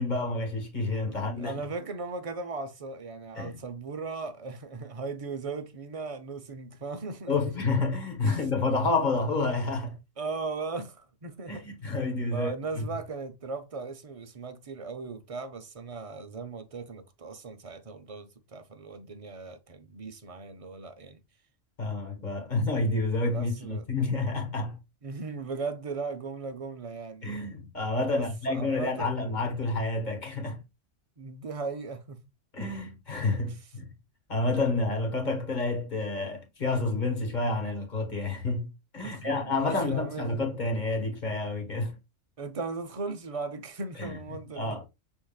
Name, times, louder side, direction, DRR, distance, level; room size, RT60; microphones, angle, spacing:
voice 1, 0.0-1.7 3.3-3.6 7.3-10.0 11.5-12.8 21.8-24.8 27.2-30.6 32.5-33.9 34.3-42.0 44.0-44.2 44.6-44.9, left 3 dB, 40° left, 1.5 m, -29 dB
voice 2, 1.0-7.5 8.2-8.4 10.2-11.7 12.3-21.2 23.3-23.8 25.0-27.3 28.1-29.2 31.2-32.2 39.0-40.5 42.4-44.8, right 4 dB, 35° right, 0.6 m, -37 dB
6.2 x 3.6 x 2.3 m
omnidirectional pair, 1.2 m